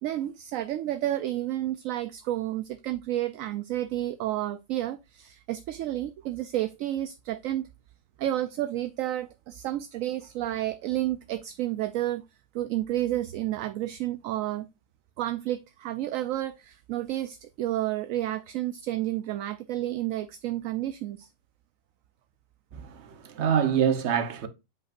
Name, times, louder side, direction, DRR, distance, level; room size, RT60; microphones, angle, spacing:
voice 1, 0.0-7.7 8.2-12.2 12.5-14.7 15.2-21.3, right 13 dB, 75° right, 0.9 m, -31 dB
voice 2, 22.7-24.5, right 8 dB, 55° right, 1.2 m, -26 dB
8.2 x 5.2 x 2.5 m
omnidirectional pair, 1.5 m